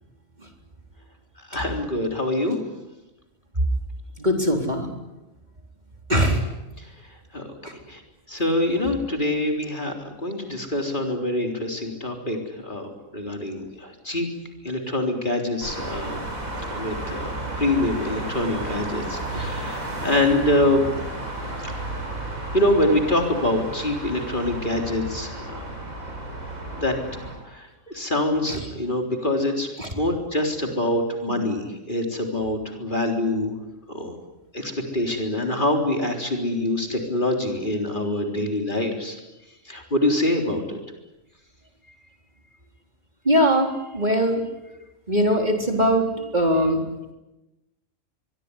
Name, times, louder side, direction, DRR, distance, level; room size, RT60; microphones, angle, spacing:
voice 1, 1.5-2.6 6.8-6.9 7.3-7.5 7.9-8.0 8.3-14.3 14.6-16.2 16.7-17.3 17.6-20.9 21.6-22.0 22.5-25.7 26.8-27.0 27.4-29.7 29.9-33.6 33.9-34.1 34.5-39.2 39.7-40.8, left 1 dB, 35° left, 3 dB, 3.9 m, -25 dB
voice 2, 4.2-4.9 6.1-6.4 28.5-28.6 29.8-29.9 43.3-44.4 45.1-46.8, equal, 30° right, 3 dB, 4.0 m, -21 dB
sound 1, 15.6-27.4, right 2 dB, 90° right, 7.6 m, -33 dB
24.0 x 23.5 x 9.9 m, 1.0 s
omnidirectional pair, 1.4 m